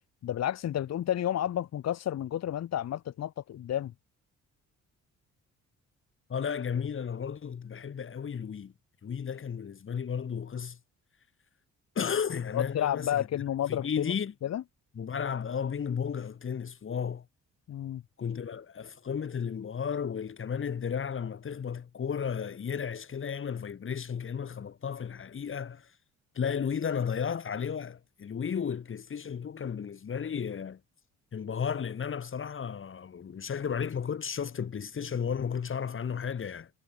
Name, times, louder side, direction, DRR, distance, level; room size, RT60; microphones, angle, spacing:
voice 1, 0.2-3.9 12.5-14.1 14.4-14.6 17.7-18.0, left 11 dB, 60° left, 1.1 m, -31 dB
voice 2, 6.3-8.7 9.0-10.8 12.0-13.3 13.7-14.3 15.0-17.2 18.2-25.9 26.4-30.8 31.3-36.7, left 7 dB, 45° left, 2.0 m, -33 dB
cardioid pair, 90°, 30 cm